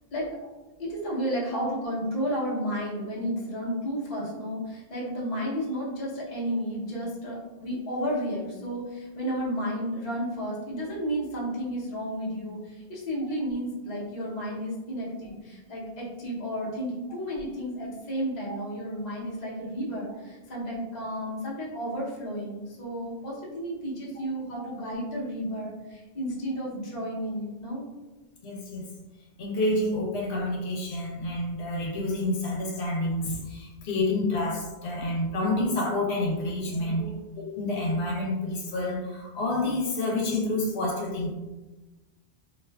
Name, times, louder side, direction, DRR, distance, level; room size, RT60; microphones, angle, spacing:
voice 1, 0.8-27.8 36.7-37.2, equal, 45° left, -5 dB, 0.8 m, -32 dB
voice 2, 28.4-28.9 29.4-37.1 37.4-41.3, left 2 dB, 85° left, -2 dB, 0.9 m, -28 dB
2.5 x 2.3 x 2.2 m, 1.1 s
omnidirectional pair, 1.1 m